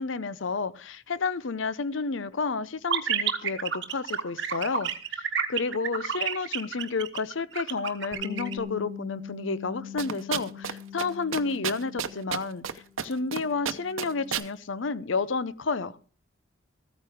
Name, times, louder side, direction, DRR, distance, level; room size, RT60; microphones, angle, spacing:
voice 1, 0.0-12.6 13.0-16.0, left 4 dB, 70° left, 0.7 m, -31 dB
sound 1, 2.9-8.5, right 7 dB, 60° right, 1.3 m, -29 dB
Bass guitar, 8.1-12.8 13.1-14.4, left 8 dB, 30° right, 3.4 m, -41 dB
sound 2, 10.0-10.7 11.0-11.1 11.3-12.7 13.0-13.4 13.6-14.5, right 8 dB, 85° right, 0.8 m, -30 dB
14.0 x 9.1 x 4.9 m
head